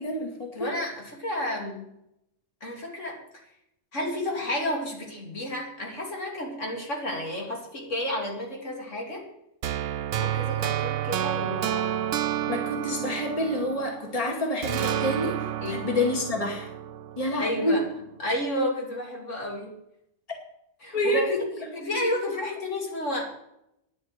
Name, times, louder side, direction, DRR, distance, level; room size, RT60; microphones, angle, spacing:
voice 1, 0.0-0.7 12.5-16.7 17.2-17.8 20.9-21.4 21.9-22.4, left 1 dB, 30° left, 1 dB, 2.3 m, -28 dB
voice 2, 0.5-1.9 2.6-3.2 3.9-9.2 10.1-11.9 15.6-15.9 17.4-17.8 18.2-19.7 20.8-21.4 21.7-23.2, left 1 dB, 75° left, -1 dB, 3.2 m, -31 dB
sound 1, 9.6-14.2 14.6-17.7, right 11 dB, 80° right, 1.0 m, -30 dB
10.0 x 7.7 x 9.5 m, 0.80 s
omnidirectional pair, 1.3 m